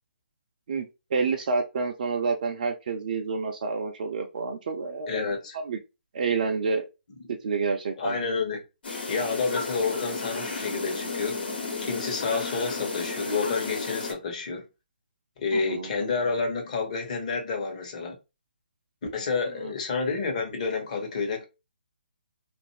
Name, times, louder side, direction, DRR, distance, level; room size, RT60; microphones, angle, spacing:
voice 1, 0.7-5.2 5.7-5.8 6.1-6.9 7.4-8.2 15.5-15.9 19.6-19.7, right 4 dB, 50° right, 0.4 m, -28 dB
voice 2, 5.1-5.6 8.0-8.6 9.1-11.4 11.8-14.6 15.4-18.2 19.1-21.4, left 4 dB, 40° left, 0.9 m, -29 dB
sound 1, 8.8-14.1, left 4 dB, 65° left, 1.2 m, -33 dB
2.5 x 2.5 x 2.9 m
figure-of-eight pair, 140°, 6 cm